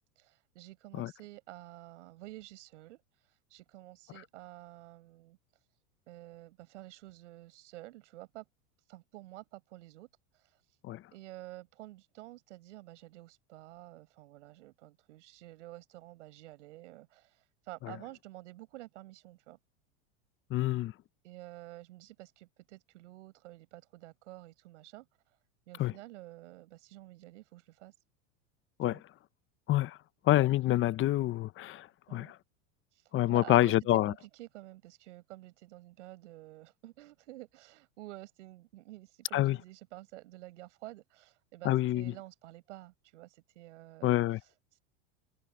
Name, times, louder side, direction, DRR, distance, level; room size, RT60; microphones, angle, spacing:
voice 1, 0.2-5.7 6.1-8.5 8.8-10.8 11.1-19.6 21.2-25.4 25.7-28.0 28.9-29.0 32.1-32.3 32.9-44.8, right 17 dB, 75° right, 7.1 m, -50 dB
voice 2, 20.5-20.9 25.8-25.9 28.8-29.0 29.7-30.0 30.3-32.3 33.1-34.1 39.3-39.6 41.6-42.1 44.0-44.4, left 14 dB, 35° left, 0.9 m, -27 dB
supercardioid pair, 115°, 36 cm